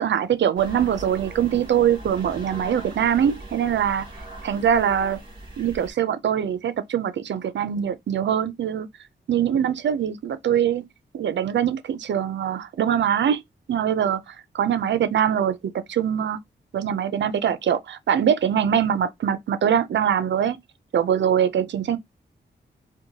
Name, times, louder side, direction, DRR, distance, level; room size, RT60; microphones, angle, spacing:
voice 1, 0.0-4.1 4.4-5.2 5.6-8.9 9.3-10.9 11.1-13.4 13.7-16.4 16.7-20.6 20.9-22.0, right 9 dB, 75° right, 0.5 m, -23 dB
sound 1, 0.6-5.9, right 2 dB, 25° right, 2.3 m, -40 dB
4.5 x 2.2 x 2.7 m
wide cardioid pair, 100°, 19 cm